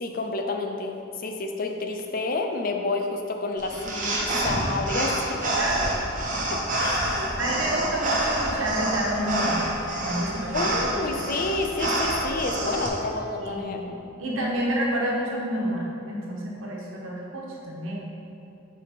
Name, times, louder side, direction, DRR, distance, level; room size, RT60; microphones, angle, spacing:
voice 1, 0.0-5.4 6.5-7.4 10.5-13.8, left 3 dB, 45° left, 4 dB, 0.6 m, -29 dB
sound 1, 3.6-12.9, right 1 dB, 40° right, 1.0 m, -27 dB
voice 2, 7.4-9.7 10.0-10.7 13.4-13.9 14.2-18.0, right 1 dB, 85° right, -3 dB, 1.4 m, -29 dB
Bowed string instrument, 8.8-13.6, left 4 dB, 60° left, 0.9 m, -43 dB
7.9 x 4.7 x 3.6 m, 2.8 s
head